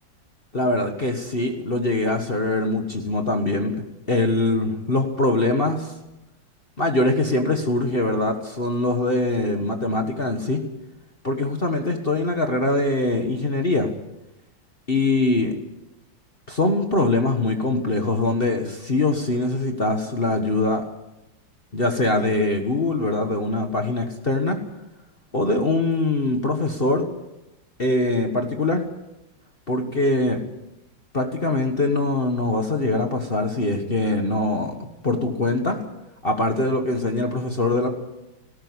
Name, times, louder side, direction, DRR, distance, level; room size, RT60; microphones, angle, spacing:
voice 1, 0.5-5.9 6.8-10.6 11.2-13.9 14.9-15.5 16.5-20.8 21.7-24.6 25.3-27.0 27.8-28.8 29.7-30.4 31.1-34.7 35.0-35.8 36.2-37.9, left 2 dB, 30° left, 4 dB, 1.6 m, -23 dB
19.0 x 17.5 x 8.0 m, 0.96 s
omnidirectional pair, 2.1 m